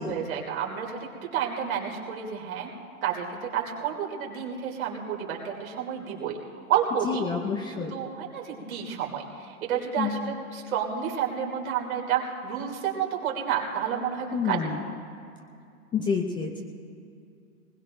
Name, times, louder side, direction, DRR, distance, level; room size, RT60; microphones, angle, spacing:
voice 1, 0.0-2.7 3.0-6.4 6.7-7.2 7.7-14.6, right 8 dB, 70° right, -1 dB, 3.0 m, -30 dB
voice 2, 7.0-8.0 10.0-10.3 14.3-14.9 15.9-16.6, left 5 dB, 10° left, 2 dB, 0.4 m, -29 dB
21.5 x 20.0 x 2.6 m, 2.4 s
hypercardioid pair, 125°, 44 cm